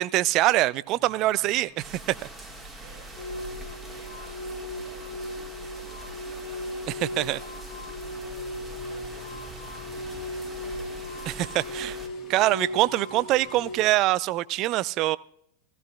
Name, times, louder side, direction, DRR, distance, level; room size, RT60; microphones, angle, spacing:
voice 1, 0.0-2.2 7.2-7.4 11.3-11.9 12.3-15.2, right 16 dB, 40° right, 19 dB, 0.3 m, -24 dB
sound 1, 0.9-13.9, left 2 dB, 20° left, 1.3 m, -53 dB
sound 2, 1.8-12.1, right 2 dB, 10° right, 1.7 m, -43 dB
voice 2, 2.8-9.3 9.7-11.1 11.5-12.1, right 4 dB, 65° right, -3 dB, 4.4 m, -54 dB
sound 3, 3.2-13.8, left 1 dB, 65° left, 1.2 m, -37 dB
16.5 x 15.0 x 2.2 m, 0.72 s
figure-of-eight pair, 90°, 0 cm